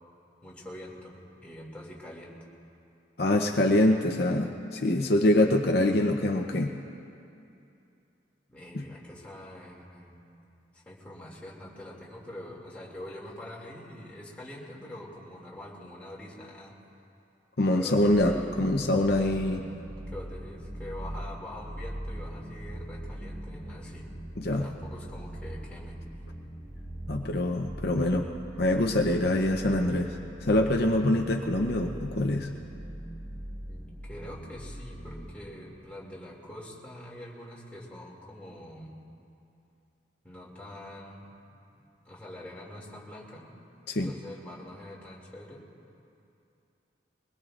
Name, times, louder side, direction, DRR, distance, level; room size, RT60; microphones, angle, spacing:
voice 1, 0.4-2.4 8.5-10.2 10.7-16.7 17.8-18.7 19.6-24.2 24.5-26.0 29.0-29.4 33.7-39.0 40.2-41.3 42.0-43.5 44.0-45.6, left 1 dB, 10° left, -5 dB, 2.5 m, -44 dB
voice 2, 3.2-6.7 8.7-8.8 17.6-19.6 24.4-24.7 27.1-28.3 28.6-32.5 43.9-44.1, left 1 dB, 60° left, 2 dB, 0.8 m, -25 dB
sound 1, 17.9-35.8, right 1 dB, 25° right, 1.2 m, -41 dB
22.5 x 21.0 x 2.5 m, 2.6 s
head